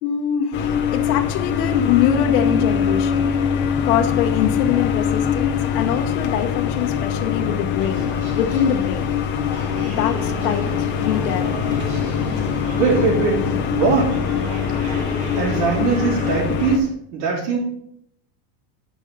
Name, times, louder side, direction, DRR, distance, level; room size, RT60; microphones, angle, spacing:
voice 1, 0.0-3.3 3.8-9.1 9.8-11.8, left 9 dB, 65° left, 3 dB, 1.1 m, -24 dB
sound 1, 0.5-16.8, left 7 dB, 25° left, 0.6 m, -23 dB
sound 2, 7.8-16.4, right 3 dB, 20° right, 0.3 m, -35 dB
voice 2, 12.7-13.4 13.7-14.1 15.3-17.6, right 5 dB, 65° right, -6 dB, 3.3 m, -21 dB
9.9 x 5.4 x 5.3 m, 0.71 s
supercardioid pair, 175°, 48 cm